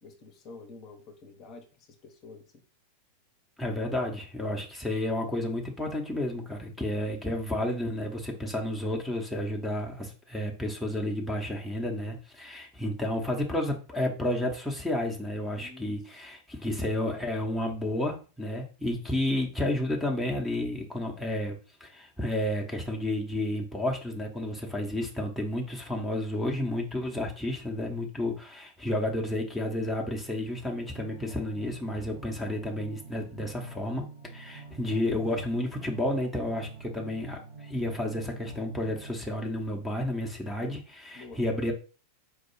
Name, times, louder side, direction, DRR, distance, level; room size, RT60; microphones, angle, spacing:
voice 1, 0.0-2.6 15.6-16.3 41.1-41.4, left 3 dB, 35° left, 4 dB, 0.8 m, -49 dB
voice 2, 3.6-34.1 34.3-41.7, left 1 dB, ahead, -2 dB, 0.9 m, -31 dB
sound 1, 30.8-39.1, right 4 dB, 65° right, 2.2 m, -47 dB
4.7 x 2.3 x 4.5 m, 0.35 s
figure-of-eight pair, 90°, 0 cm